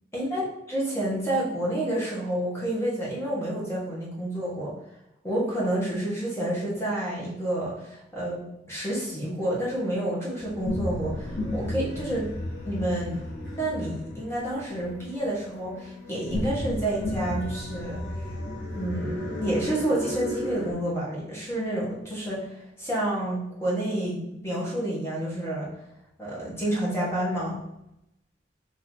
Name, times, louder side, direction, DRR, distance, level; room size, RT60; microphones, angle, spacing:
voice 1, 0.1-4.7 5.2-8.4 8.7-12.3 12.6-13.2 13.5-18.0 18.7-25.7 26.2-27.6, right 1 dB, 15° left, -6 dB, 1.2 m, -29 dB
sound 1, 10.4-20.7, left 1 dB, 65° left, 1.2 m, -34 dB
5.5 x 2.9 x 3.0 m, 0.86 s
head